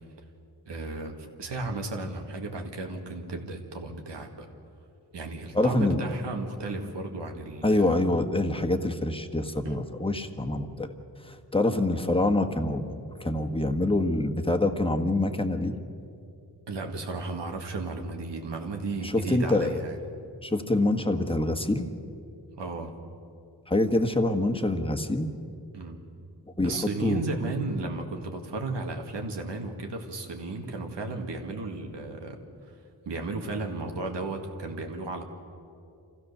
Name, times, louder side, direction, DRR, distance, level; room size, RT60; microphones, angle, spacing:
voice 1, 0.7-4.5 5.1-8.0 9.6-9.8 16.7-20.0 22.6-22.9 25.7-26.0 26.6-32.4 32.7-32.8 33.1-35.2, right 3 dB, 85° right, 3 dB, 2.1 m, -34 dB
voice 2, 5.5-6.0 7.6-10.9 11.2-15.7 19.0-19.7 20.4-21.9 23.7-25.3 26.6-27.2, left 2 dB, 15° left, 6 dB, 1.4 m, -26 dB
26.0 x 15.5 x 6.8 m, 2.5 s
wide cardioid pair, 80°, 41 cm